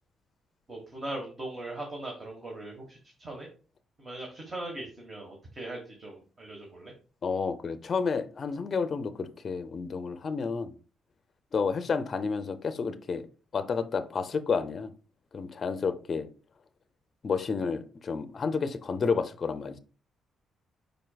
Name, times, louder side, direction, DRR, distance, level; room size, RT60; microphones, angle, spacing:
voice 1, 0.7-3.5 4.0-6.9, right 2 dB, 35° right, 1.3 m, -40 dB
voice 2, 7.2-10.7 11.5-13.3 13.5-14.9 15.3-16.3 17.2-19.8, left 5 dB, 45° left, 0.5 m, -30 dB
5.1 x 4.4 x 2.3 m
cardioid pair, 90°, 0 cm